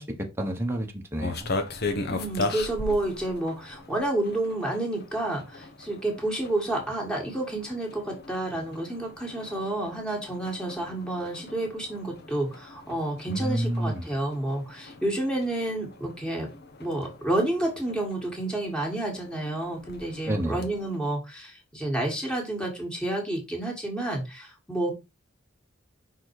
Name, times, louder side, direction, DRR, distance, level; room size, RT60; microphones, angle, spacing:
voice 1, 0.0-1.5 13.3-14.0 20.3-20.6, right 1 dB, 10° right, 2 dB, 1.0 m, -29 dB
sound 1, 1.2-21.0, left 2 dB, 55° left, 1.0 m, -39 dB
voice 2, 2.1-16.5 16.8-24.9, right 1 dB, 5° left, 0 dB, 1.7 m, -30 dB
5.5 x 4.1 x 4.7 m, 0.25 s
head